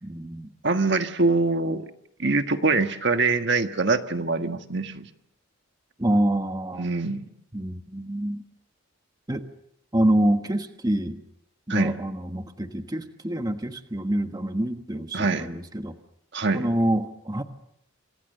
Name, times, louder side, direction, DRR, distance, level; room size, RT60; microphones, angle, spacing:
voice 1, 0.0-0.5 6.0-6.9 7.5-8.4 9.3-9.4 9.9-11.2 11.7-15.9 16.5-17.4, right 1 dB, 20° right, 7 dB, 1.3 m, -26 dB
voice 2, 0.6-1.8 2.2-5.1 6.8-7.3 11.7-12.0 15.1-15.5 16.3-16.7, right 3 dB, 55° right, 7 dB, 1.5 m, -24 dB
28.0 x 26.5 x 6.7 m, 0.76 s
head